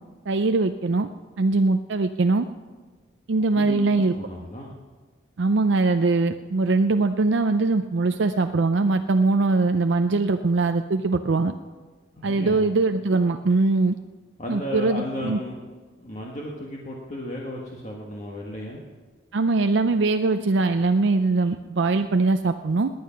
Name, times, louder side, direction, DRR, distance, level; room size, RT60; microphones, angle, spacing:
voice 1, 0.3-1.1 1.4-2.5 3.3-4.2 5.4-11.5 12.2-14.0 14.5-15.4 19.3-22.9, right 3 dB, 70° right, 7 dB, 0.5 m, -22 dB
voice 2, 3.5-4.7 12.2-12.7 14.4-15.7 16.0-18.8, left 1 dB, 35° left, -2 dB, 1.5 m, -34 dB
19.0 x 9.4 x 5.7 m, 1.4 s
head